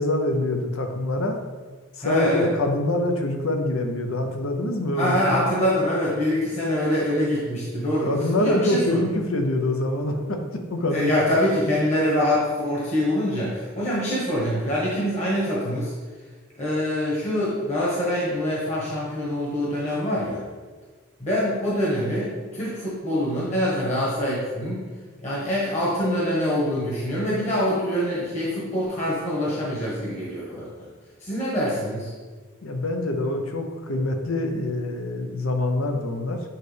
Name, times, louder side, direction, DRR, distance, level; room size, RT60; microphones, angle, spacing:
voice 1, 0.0-1.4 2.0-5.4 8.0-11.1 32.6-36.4, left 1 dB, 85° left, 4 dB, 0.8 m, -25 dB
voice 2, 2.0-2.5 4.9-9.0 10.9-15.9 16.6-20.4 21.2-24.8 25.2-30.9 31.2-32.1, equal, 35° left, -7 dB, 1.4 m, -25 dB
8.8 x 4.0 x 3.4 m, 1.4 s
head